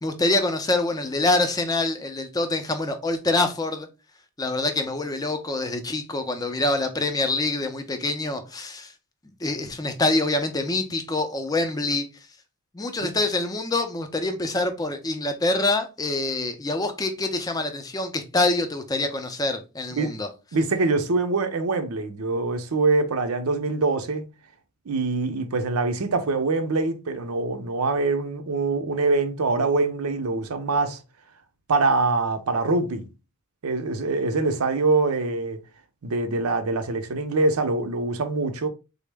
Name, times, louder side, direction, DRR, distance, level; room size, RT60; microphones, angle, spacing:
voice 1, 0.0-3.9 4.4-8.9 9.4-12.1 12.7-20.3, left 2 dB, 15° left, 0.4 m, -25 dB
voice 2, 20.5-24.3 24.9-31.0 31.7-33.1 33.6-35.6 36.0-38.7, right 3 dB, 85° right, 0.6 m, -24 dB
3.6 x 2.0 x 3.3 m
head